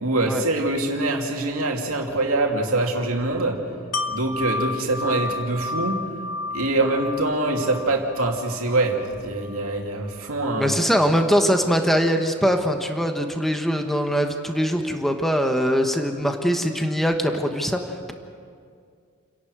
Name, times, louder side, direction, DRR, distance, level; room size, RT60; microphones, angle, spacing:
voice 1, 0.0-3.6 4.1-6.0 6.5-10.8, right 2 dB, 80° right, 1 dB, 2.6 m, -24 dB
Wind chime, 3.9-9.7 10.1-10.3, left 2 dB, 75° left, 1.4 m, -32 dB
voice 2, 10.6-18.1, equal, ahead, 4 dB, 1.2 m, -22 dB
29.0 x 11.5 x 8.1 m, 2.2 s
head